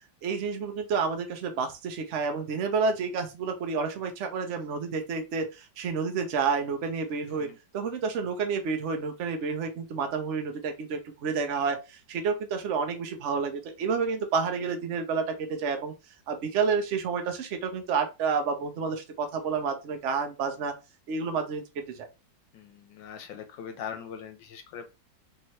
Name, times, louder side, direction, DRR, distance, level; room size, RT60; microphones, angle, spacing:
voice 1, 0.2-15.9 16.3-20.7 21.1-22.1, right 5 dB, 85° right, 0.6 m, -30 dB
voice 2, 22.5-24.9, left 7 dB, 75° left, 1.2 m, -41 dB
3.3 x 2.8 x 3.1 m
omnidirectional pair, 2.1 m